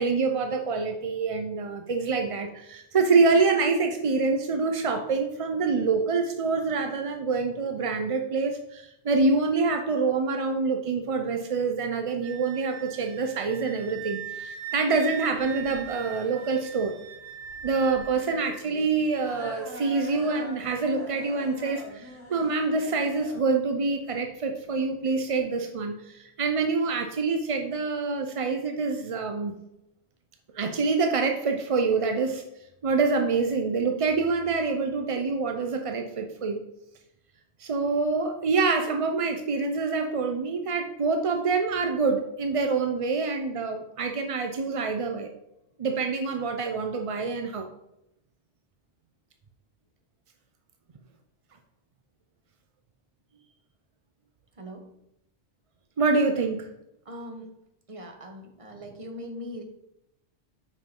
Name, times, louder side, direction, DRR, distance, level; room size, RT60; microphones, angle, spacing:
voice 1, 0.0-16.9 17.6-29.6 30.5-32.4 32.8-36.6 37.6-45.3 45.8-47.7 56.0-56.7, right 4 dB, 45° right, 5 dB, 0.4 m, -26 dB
Wind instrument woodwind instrument, 12.2-18.6, right 8 dB, 80° right, 1.1 m, -41 dB
sound 1, 15.4-25.4, equal, 85° left, 3.0 m, -44 dB
voice 2, 54.6-54.9 57.0-57.5 57.9-59.6, equal, 30° right, 3 dB, 1.1 m, -40 dB
7.4 x 5.7 x 3.7 m, 0.83 s
omnidirectional pair, 1.2 m